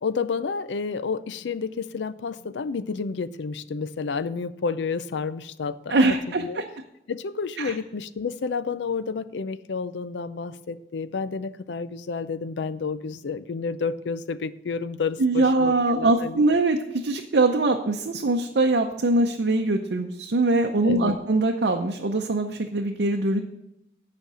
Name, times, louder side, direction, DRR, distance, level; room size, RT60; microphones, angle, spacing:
voice 1, 0.0-6.6 7.1-16.4 20.8-21.2, left 5 dB, 90° left, 14 dB, 0.5 m, -30 dB
voice 2, 5.9-6.6 7.6-7.7 15.2-23.4, right 2 dB, 75° right, 2 dB, 0.6 m, -22 dB
9.0 x 5.2 x 6.8 m, 0.85 s
head